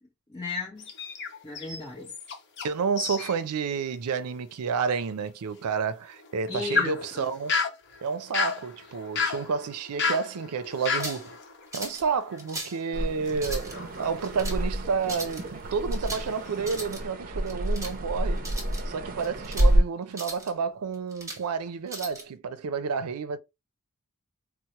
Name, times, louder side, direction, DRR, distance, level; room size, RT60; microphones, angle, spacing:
voice 1, 0.3-0.9 1.4-2.1 6.5-7.3, left 3 dB, 20° left, 0.8 m, -35 dB
sound 1, 0.8-2.7 3.0-3.4 3.8-3.9 4.5-4.6 6.1-12.8 13.2-14.8 15.3-15.6 16.0-16.8, left 5 dB, 50° left, 0.8 m, -33 dB
voice 2, 2.6-7.6 8.0-11.4 11.7-18.5 18.9-23.4, right 5 dB, 85° right, 0.4 m, -30 dB
sound 2, 10.8-11.3 11.7-12.1 12.4-12.8 13.3-13.8 14.2-14.6 15.0-15.4 15.9-16.3 16.6-17.0 17.5-18.0 18.4-18.8 19.2-19.7 20.1-20.5 20.9-21.4 21.9-22.2, right 2 dB, 15° right, 1.0 m, -38 dB
sound 3, 12.9-19.8, right 1 dB, 40° right, 0.6 m, -28 dB
4.3 x 2.0 x 2.8 m
head